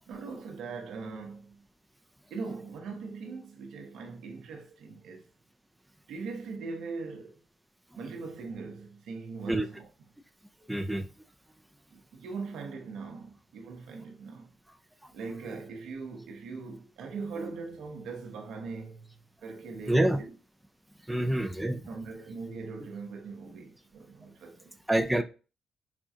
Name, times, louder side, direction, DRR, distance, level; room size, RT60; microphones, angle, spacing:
voice 1, 0.1-1.6 2.3-5.3 6.1-7.4 8.0-9.9 11.9-14.5 15.1-20.3 21.1-21.3 21.9-24.8 25.1-25.2, right 4 dB, 75° right, 0.8 m, -41 dB
voice 2, 10.7-11.1 19.9-20.2 21.1-21.9 24.9-25.2, right 1 dB, 5° right, 0.4 m, -26 dB
5.0 x 2.3 x 2.7 m
supercardioid pair, 60°, 0 cm